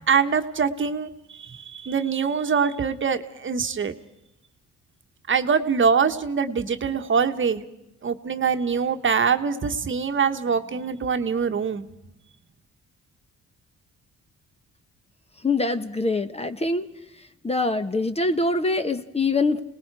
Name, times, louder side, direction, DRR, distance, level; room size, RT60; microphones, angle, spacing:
voice 1, 0.1-1.1 1.4-4.0 5.3-7.6 8.0-11.9, right 6 dB, 40° right, 7 dB, 1.3 m, -23 dB
voice 2, 15.4-16.8 17.4-19.6, left 3 dB, 20° left, 10 dB, 1.2 m, -24 dB
28.0 x 19.5 x 4.8 m, 0.89 s
cardioid pair, 90°, 30 cm